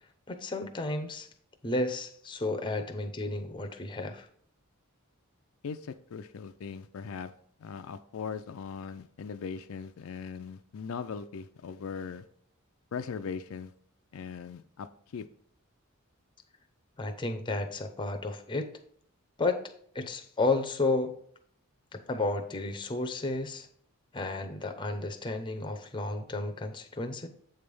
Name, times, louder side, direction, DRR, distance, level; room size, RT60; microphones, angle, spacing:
voice 1, 0.3-1.3 1.6-4.3 17.0-18.7 19.4-19.6 19.9-21.2 21.9-23.7 24.1-27.3, left 2 dB, 20° left, 0.6 m, -32 dB
voice 2, 5.6-7.3 7.6-12.2 12.9-13.7 14.1-14.9 15.1-15.3, left 6 dB, 70° left, 0.4 m, -39 dB
7.8 x 3.3 x 5.3 m
head